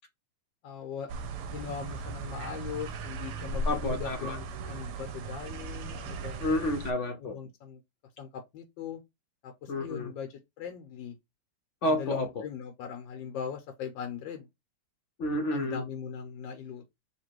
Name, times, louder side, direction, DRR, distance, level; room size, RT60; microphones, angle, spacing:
voice 1, 0.6-1.1 1.4-6.4 7.2-7.8 8.2-9.0 9.4-11.2 11.9-14.5 15.5-16.9, left 7 dB, 85° left, 1.4 m, -40 dB
sound 1, 1.1-6.9, right 3 dB, 70° right, 1.1 m, -37 dB
voice 2, 3.6-4.4 6.4-7.4 9.7-10.1 11.8-12.3 15.2-15.8, left 1 dB, 60° left, 0.8 m, -30 dB
3.0 x 2.9 x 4.5 m
omnidirectional pair, 2.0 m